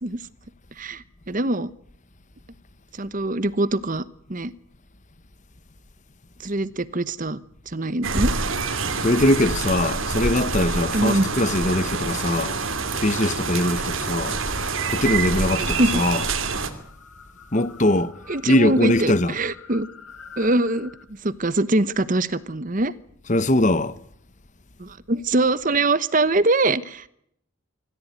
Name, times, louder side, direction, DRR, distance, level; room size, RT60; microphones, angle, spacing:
voice 1, 0.8-1.7 3.0-4.0 4.3-4.5 6.4-7.4 7.7-8.3 10.9-11.3 15.6-16.0 18.3-19.9 20.4-20.9 21.2-22.9 24.8-27.1, right 2 dB, 40° right, 1.0 m, -23 dB
sound 1, 8.0-16.7, right 4 dB, 65° right, 2.8 m, -26 dB
sound 2, 8.1-21.0, left 3 dB, 85° left, 3.3 m, -47 dB
voice 2, 9.0-12.6 13.0-14.4 14.9-16.3 17.5-18.2 18.5-19.4 23.3-24.0, left 1 dB, 35° left, 1.0 m, -21 dB
25.5 x 14.5 x 9.3 m
head